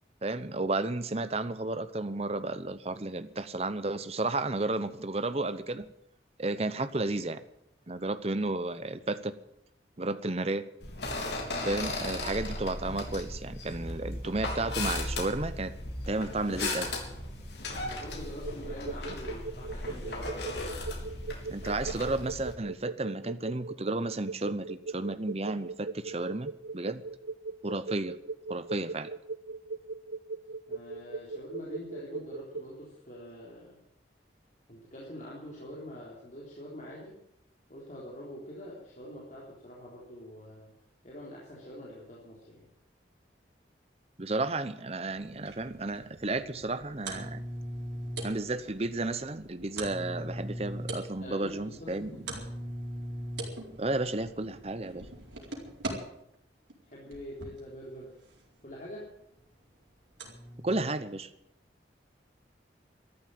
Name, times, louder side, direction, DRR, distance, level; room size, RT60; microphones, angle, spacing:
voice 1, 0.2-5.9 6.4-7.4 7.9-9.3 10.0-10.6 11.6-15.7 16.1-16.9 21.5-27.0 27.6-28.2 28.5-29.1 44.2-47.4 48.2-52.1 53.8-55.0 60.6-61.3, right 2 dB, 35° right, 12 dB, 0.9 m, -32 dB
sound 1, 10.8-22.5, left 2 dB, 70° left, 3.6 m, -36 dB
voice 2, 17.8-20.4 30.7-33.8 34.7-37.2 37.7-40.7 41.0-42.7 51.2-52.2 56.9-58.2 58.6-59.1, equal, 45° left, -5 dB, 3.7 m, -45 dB
sound 2, 18.4-32.6, right 3 dB, 70° right, 0.7 m, -39 dB
sound 3, 45.1-55.9 56.7-57.6 58.8-58.9 59.3-59.4 60.2-60.9, right 1 dB, 85° right, 4.4 m, -41 dB
13.5 x 11.5 x 9.1 m, 0.78 s
head